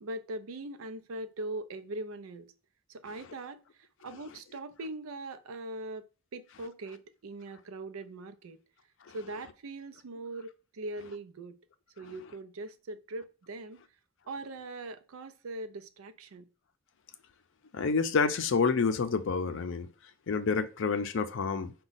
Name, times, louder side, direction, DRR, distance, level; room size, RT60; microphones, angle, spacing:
voice 1, 0.0-2.5 2.9-6.1 6.3-8.6 9.1-11.5 12.0-13.8 14.3-16.5, right 2 dB, 85° right, 0.5 m, -41 dB
voice 2, 17.7-19.9 20.3-21.7, left 5 dB, 65° left, 0.5 m, -28 dB
5.0 x 2.3 x 3.9 m
head